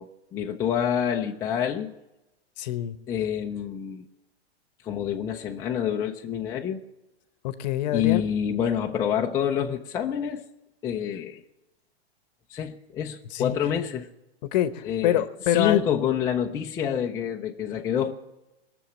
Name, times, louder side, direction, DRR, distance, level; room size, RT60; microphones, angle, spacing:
voice 1, 0.0-1.9 3.1-4.0 4.8-6.9 7.9-10.4 10.8-11.4 12.5-14.1 14.8-18.2, left 9 dB, 10° left, 0.5 m, -27 dB
voice 2, 2.6-3.0 7.4-8.2 13.3-13.6 14.4-15.8, left 12 dB, 40° left, 0.9 m, -25 dB
20.5 x 7.0 x 8.6 m
hypercardioid pair, 150°, 32 cm